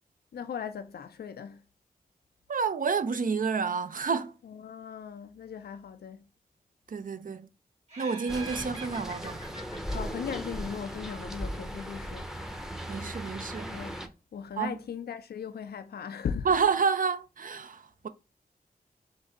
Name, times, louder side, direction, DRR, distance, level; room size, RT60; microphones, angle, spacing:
voice 1, 0.3-1.6 4.4-6.2 9.9-12.3 13.7-14.0 14.3-16.5, left 7 dB, 90° left, 0.4 m, -38 dB
voice 2, 2.5-4.3 6.9-7.5 8.0-9.4 12.9-13.8 14.6-14.8 16.5-18.1, right 5 dB, 60° right, 0.5 m, -29 dB
Laughter, 7.9-11.2, right 3 dB, 40° right, 1.9 m, -45 dB
sound 1, 8.3-14.1, equal, 5° right, 0.7 m, -38 dB
3.8 x 2.6 x 4.6 m
cardioid pair, 60°, 16 cm